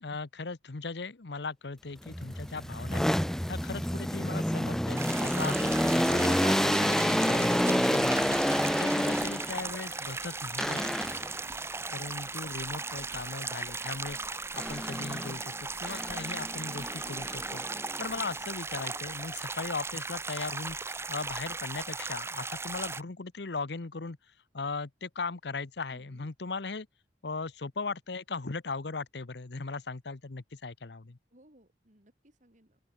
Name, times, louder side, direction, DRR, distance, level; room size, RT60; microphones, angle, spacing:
voice 1, 0.0-3.1 3.5-8.4 8.8-10.8 11.9-17.6 18.0-24.2 24.5-26.9 27.2-31.2, left 4 dB, 65° left, 0.9 m, -38 dB
sound 1, 2.1-9.7 10.6-11.4 14.6-15.4 15.8-18.2, equal, 5° left, 0.4 m, -29 dB
sound 2, 5.0-23.0, right 3 dB, 15° right, 0.8 m, -37 dB
voice 2, 25.9-26.3 31.3-32.8, right 1 dB, 45° right, 4.7 m, -62 dB
open air
head